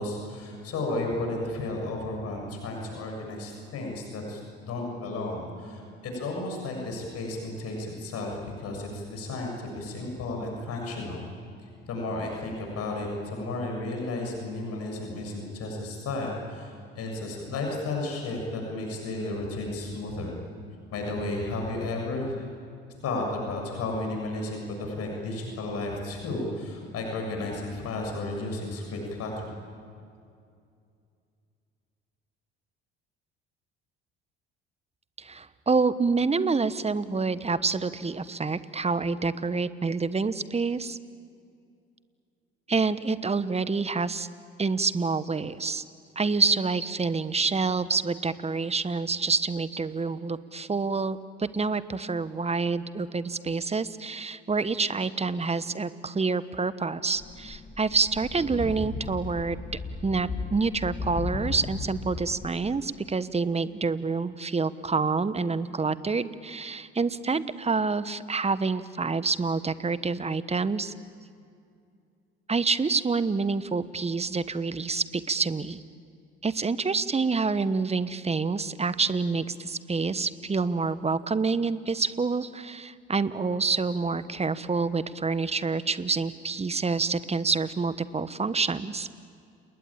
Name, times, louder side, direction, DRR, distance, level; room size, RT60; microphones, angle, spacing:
voice 1, 0.0-11.2 11.9-20.3 20.9-22.5 23.0-29.5, left 2 dB, 55° left, 1 dB, 7.2 m, -33 dB
voice 2, 35.2-41.0 42.7-44.3 44.6-45.8 46.1-59.6 60.0-70.9 72.5-75.8 76.4-89.1, right 4 dB, 20° right, 15 dB, 1.2 m, -27 dB
sound 1, 57.2-62.6, left 4 dB, 25° left, 2.3 m, -36 dB
30.0 x 20.0 x 8.9 m, 2.4 s
hypercardioid pair, 55°, 29 cm